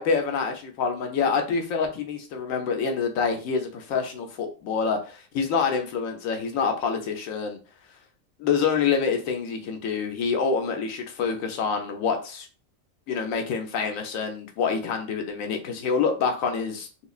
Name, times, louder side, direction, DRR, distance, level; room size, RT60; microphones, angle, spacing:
voice 1, 0.0-7.6 8.4-12.5 13.1-17.1, left 5 dB, 90° left, 4 dB, 1.1 m, -26 dB
3.6 x 3.0 x 2.4 m, 0.35 s
omnidirectional pair, 1.4 m